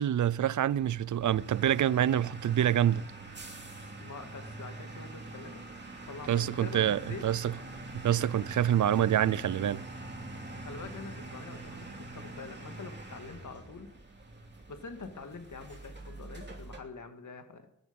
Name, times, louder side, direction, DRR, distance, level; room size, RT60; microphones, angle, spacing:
voice 1, 0.0-3.0 6.3-7.5 7.9-9.8, right 10 dB, 75° right, 0.5 m, -26 dB
sound 1, 0.7-16.8, right 2 dB, 35° right, 2.9 m, -44 dB
voice 2, 4.0-5.6 6.1-7.2 10.6-13.9 14.7-17.7, left 4 dB, 70° left, 2.1 m, -45 dB
15.0 x 11.5 x 5.3 m
cardioid pair, 60°, 31 cm